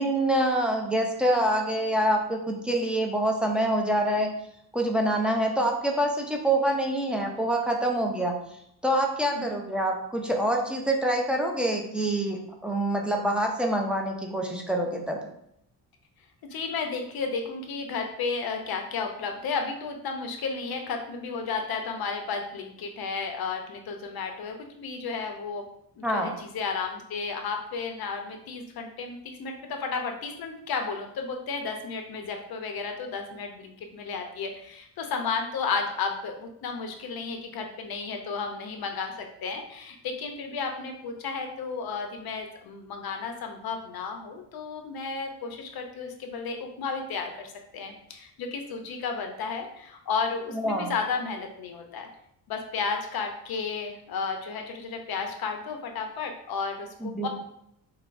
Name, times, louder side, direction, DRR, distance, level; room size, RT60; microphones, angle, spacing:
voice 1, 0.0-4.3 4.7-8.4 8.8-15.2 26.0-26.3 50.5-50.9 57.0-57.3, right 1 dB, 5° right, 0 dB, 0.5 m, -26 dB
voice 2, 16.4-25.6 26.0-52.1 52.5-57.3, left 5 dB, 65° left, 4 dB, 0.7 m, -33 dB
5.8 x 2.1 x 2.5 m, 0.76 s
cardioid pair, 120°, 40 cm